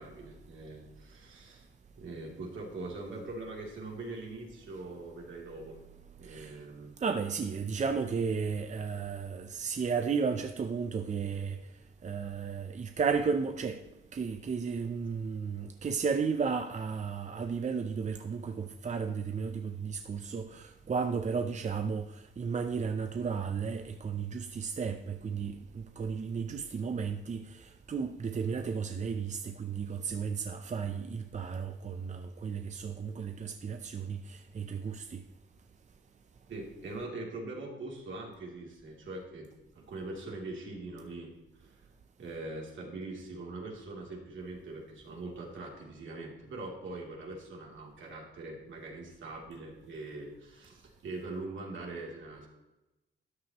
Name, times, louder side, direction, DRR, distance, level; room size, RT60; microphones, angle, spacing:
voice 1, 0.0-1.6 2.0-5.8 6.2-6.9 36.5-39.5 39.7-41.3 41.6-41.9 42.2-52.5, right 2 dB, 70° right, 3.1 m, -42 dB
voice 2, 6.2-6.6 7.0-11.6 12.0-13.8 14.1-35.2, right 5 dB, 35° right, 0.6 m, -34 dB
13.0 x 9.4 x 3.0 m
cardioid pair, 90°, 21 cm